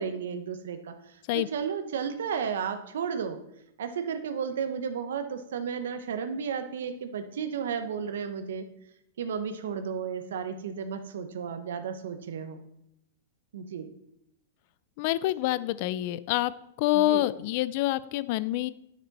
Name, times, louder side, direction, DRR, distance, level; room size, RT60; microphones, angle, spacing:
voice 1, 0.0-3.4 3.8-8.6 9.2-12.6 13.5-13.9 16.9-17.3, right 7 dB, 85° right, 8 dB, 0.9 m, -33 dB
voice 2, 15.0-16.5 16.8-18.7, left 16 dB, 45° left, 18 dB, 0.4 m, -26 dB
9.9 x 6.1 x 4.1 m, 0.78 s
supercardioid pair, 160°, 0 cm